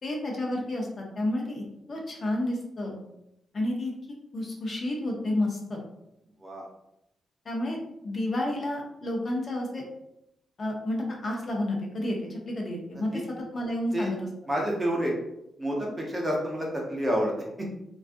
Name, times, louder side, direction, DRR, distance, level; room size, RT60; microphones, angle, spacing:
voice 1, 0.0-3.0 3.5-3.9 4.3-5.8 7.4-9.8 10.6-13.2 13.5-14.2, left 1 dB, 40° left, -1 dB, 0.5 m, -30 dB
voice 2, 12.9-13.2 13.9-14.1 14.5-15.1 15.6-17.6, equal, 20° right, -2 dB, 0.7 m, -29 dB
2.5 x 2.3 x 2.5 m, 0.82 s
cardioid pair, 110°, 0 cm